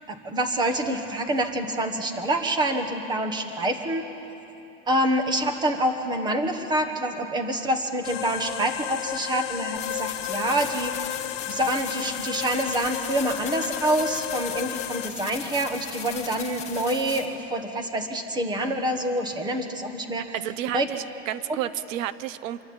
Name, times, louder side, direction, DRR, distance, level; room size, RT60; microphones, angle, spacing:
voice 1, 0.1-4.0 4.9-10.9 11.5-20.2 20.7-20.9, right 1 dB, 10° right, 6 dB, 1.3 m, -26 dB
sound 1, 8.0-15.1, left 16 dB, 70° left, 0.9 m, -33 dB
sound 2, 9.8-17.3, left 8 dB, 15° left, 2.0 m, -38 dB
voice 2, 20.3-22.6, right 12 dB, 90° right, 15 dB, 1.0 m, -31 dB
26.5 x 22.0 x 8.6 m, 3.0 s
supercardioid pair, 170°, 38 cm